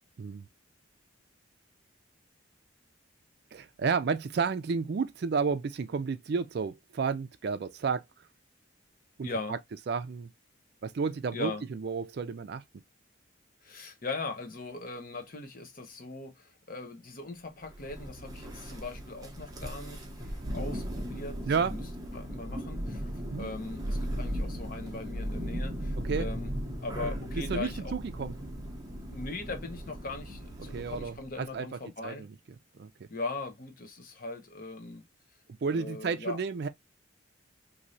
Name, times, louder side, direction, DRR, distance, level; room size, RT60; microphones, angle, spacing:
voice 1, 3.5-8.0 9.2-9.6 9.9-10.3 10.8-12.6 21.5-21.7 23.3-23.5 26.0-26.3 27.3-28.3 30.7-31.7 32.0-32.3 32.7-33.1 35.6-36.7, right 5 dB, 55° right, 0.4 m, -31 dB
voice 2, 9.2-9.6 11.3-11.6 13.6-21.4 21.7-21.8 22.1-26.5 26.8-27.9 29.1-32.3 33.1-35.0 35.7-36.4, left 3 dB, 45° left, 0.7 m, -40 dB
Thunder, 17.7-31.3, equal, 20° right, 0.8 m, -37 dB
3.1 x 2.7 x 2.6 m
head